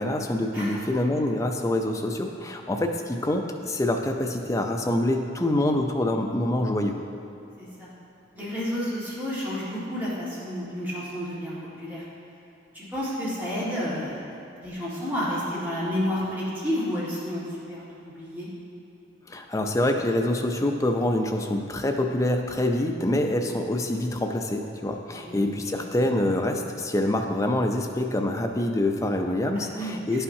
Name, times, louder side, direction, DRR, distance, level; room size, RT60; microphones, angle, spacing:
voice 1, 0.0-7.0 19.3-30.2, left 1 dB, 15° left, 3 dB, 0.4 m, -26 dB
voice 2, 7.6-7.9 8.3-12.0 12.7-18.5 25.1-25.3 25.6-25.8 29.5-30.2, equal, 10° right, -9 dB, 1.5 m, -31 dB
10.5 x 5.6 x 2.7 m, 2.8 s
head